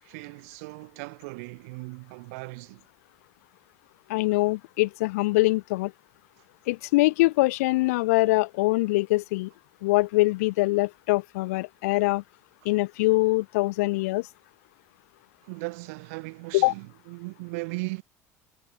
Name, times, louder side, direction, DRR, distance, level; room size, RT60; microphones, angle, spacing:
voice 1, 0.0-2.8 15.4-18.0, right 28 dB, 75° right, 7.2 m, -37 dB
voice 2, 4.1-5.9 6.7-9.5 9.8-12.2 12.7-14.3 16.5-16.7, left 21 dB, 75° left, 1.9 m, -23 dB
hypercardioid pair, 65°, 8 cm